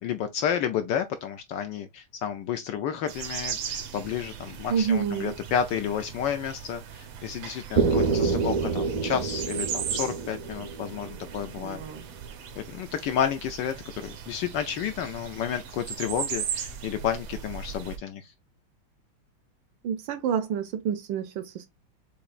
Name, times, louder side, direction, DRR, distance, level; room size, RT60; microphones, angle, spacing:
voice 1, 0.0-11.8 12.6-18.3, left 8 dB, 75° left, 1.1 m, -31 dB
sound 1, 3.1-18.0, right 8 dB, 85° right, 1.9 m, -38 dB
voice 2, 4.7-5.3 11.6-12.1 19.8-21.7, right 7 dB, 70° right, 1.2 m, -28 dB
sound 2, 7.8-11.6, right 4 dB, 55° right, 0.4 m, -27 dB
6.9 x 3.0 x 2.4 m
omnidirectional pair, 2.3 m